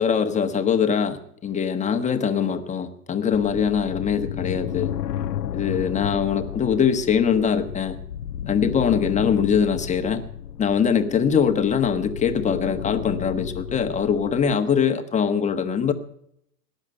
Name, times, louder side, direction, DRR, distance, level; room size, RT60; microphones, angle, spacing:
voice 1, 0.0-4.9 5.5-8.0 8.5-10.2 10.6-15.9, left 7 dB, 15° left, 8 dB, 1.3 m, -22 dB
sound 1, 3.3-14.6, left 10 dB, 90° left, 0.9 m, -33 dB
18.5 x 10.5 x 6.6 m, 0.71 s
hypercardioid pair, 125°, 48 cm